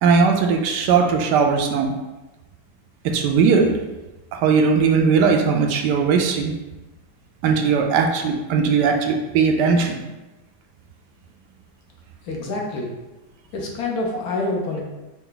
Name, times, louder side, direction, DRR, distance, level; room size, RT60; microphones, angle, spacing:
voice 1, 0.0-1.9 3.0-3.8 4.3-6.5 7.4-10.0, right 5 dB, 80° right, 3 dB, 1.2 m, -18 dB
voice 2, 12.2-12.9 13.5-14.8, left 2 dB, 65° left, -1 dB, 1.2 m, -26 dB
5.5 x 2.3 x 3.8 m, 1.1 s
omnidirectional pair, 1.8 m